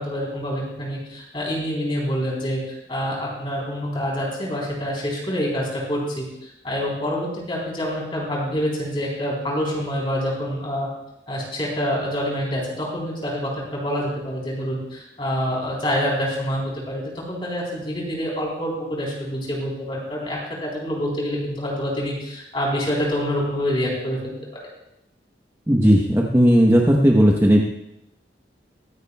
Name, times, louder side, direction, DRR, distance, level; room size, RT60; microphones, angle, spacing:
voice 1, 0.0-2.6 2.9-10.9 11.3-24.3, equal, 30° left, -3 dB, 3.7 m, -26 dB
voice 2, 25.7-27.7, equal, 15° right, -1 dB, 0.9 m, -15 dB
23.5 x 9.6 x 2.3 m, 0.86 s
head